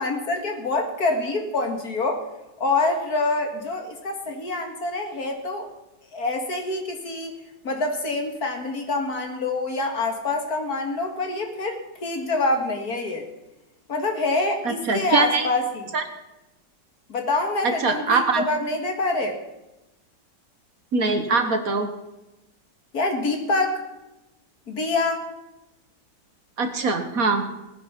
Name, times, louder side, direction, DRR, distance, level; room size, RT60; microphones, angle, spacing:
voice 1, 0.0-2.2 2.6-5.7 6.1-7.4 7.6-13.3 13.9-15.9 17.1-19.4 22.9-23.8 24.7-25.2, left 2 dB, 55° left, 4 dB, 2.4 m, -26 dB
voice 2, 14.6-15.5 15.9-16.0 17.6-18.5 20.9-21.9 26.6-27.4, right 4 dB, 55° right, 7 dB, 1.6 m, -22 dB
19.0 x 9.9 x 5.9 m, 0.98 s
omnidirectional pair, 1.9 m